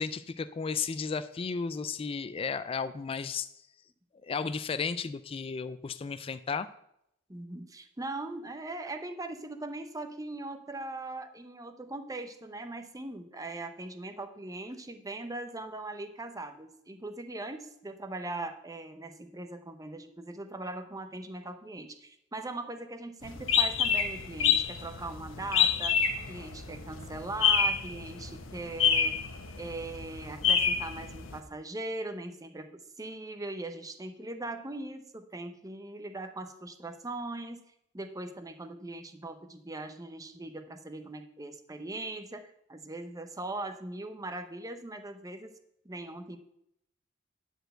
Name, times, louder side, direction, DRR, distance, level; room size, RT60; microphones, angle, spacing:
voice 1, 0.0-3.5 4.2-6.7, left 5 dB, 30° left, 12 dB, 0.3 m, -34 dB
voice 2, 7.3-26.0 26.3-29.2 29.6-37.6 37.9-45.5 45.8-46.4, right 2 dB, 20° right, 8 dB, 0.8 m, -40 dB
sound 1, 23.2-31.4, left 7 dB, 90° left, 1.1 m, -28 dB
10.0 x 4.5 x 7.8 m, 0.78 s
head